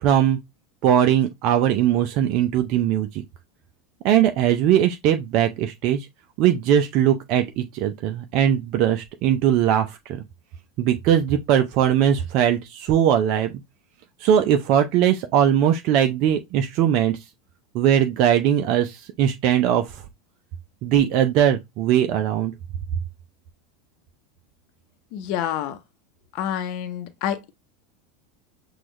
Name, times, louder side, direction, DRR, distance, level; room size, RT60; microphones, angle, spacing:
voice 1, 0.0-0.4 0.8-3.2 4.0-6.1 6.4-10.2 10.8-13.5 14.2-17.2 17.7-20.0 20.8-22.5, right 10 dB, 55° right, 0.5 m, -20 dB
voice 2, 25.1-25.8 26.3-27.5, left 10 dB, 55° left, 0.7 m, -28 dB
6.0 x 2.3 x 3.1 m
hypercardioid pair, 90°, 0 cm